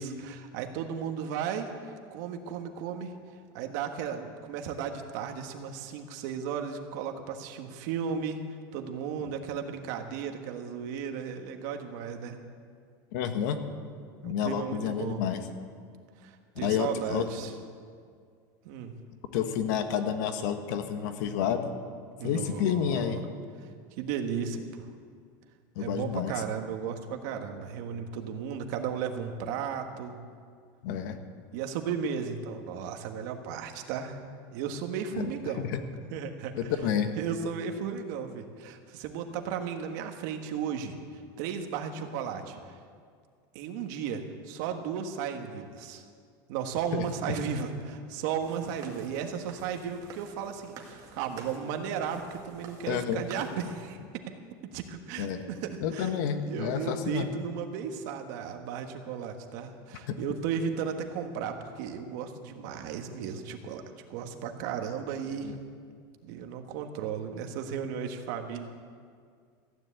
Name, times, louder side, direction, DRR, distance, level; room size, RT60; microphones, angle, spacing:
voice 1, 0.0-3.1 3.5-8.4 8.7-12.4 14.2-15.2 16.2-17.5 18.6-18.9 22.2-23.2 23.6-23.7 24.0-24.8 25.8-30.2 31.5-34.2 34.5-35.7 36.1-36.7 37.1-42.6 43.5-46.0 46.5-54.0 54.7-56.1 56.4-63.8 64.1-65.5 66.2-68.6, right 7 dB, 60° right, 5 dB, 1.5 m, -35 dB
voice 2, 13.1-13.6 14.2-15.4 16.6-17.3 19.3-21.7 22.2-23.2 25.7-26.3 30.8-31.2 35.1-35.8 36.6-37.1 46.9-47.3 52.9-53.2 55.2-55.4 55.8-57.3 60.1-60.2 65.4-65.5, left 8 dB, 70° left, 7 dB, 1.5 m, -30 dB
sound 1, 48.4-53.9, right 5 dB, 35° right, 2.0 m, -49 dB
15.0 x 10.0 x 8.3 m, 2.1 s
supercardioid pair, 165°, 11 cm